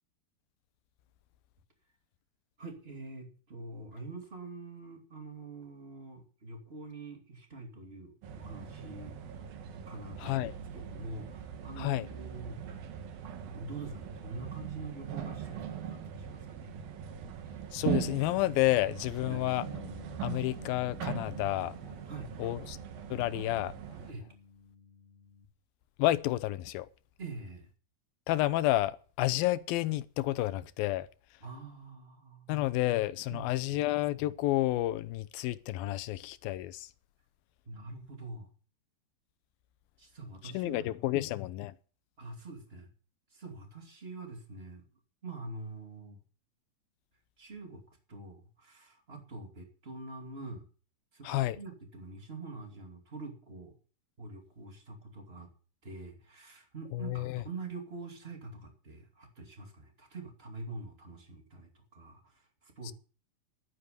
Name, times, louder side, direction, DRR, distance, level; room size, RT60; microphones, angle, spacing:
voice 1, 2.6-9.1 9.9-12.6 13.5-16.7 19.3-19.5 22.1-22.3 24.1-24.3 27.2-27.7 31.4-32.5 33.3-33.9 37.7-38.5 40.0-41.2 42.2-42.9 43.3-44.8 45.2-46.2 47.4-47.8 48.1-50.7 51.1-53.8 54.2-55.5 55.8-62.9, right 3 dB, 20° right, 2.0 m, -45 dB
sound 1, 8.2-24.1, right 9 dB, 80° right, 3.2 m, -40 dB
voice 2, 10.2-10.5 11.8-12.1 17.7-19.7 20.2-21.7 22.4-22.8 23.1-23.7 26.0-26.9 28.3-31.1 32.5-36.9 40.4-41.7 51.2-51.6 56.9-57.4 62.8-62.9, left 16 dB, 85° left, 2.5 m, -30 dB
Bass guitar, 19.2-25.5, left 4 dB, 20° left, 2.0 m, -50 dB
12.0 x 9.7 x 6.8 m
omnidirectional pair, 4.1 m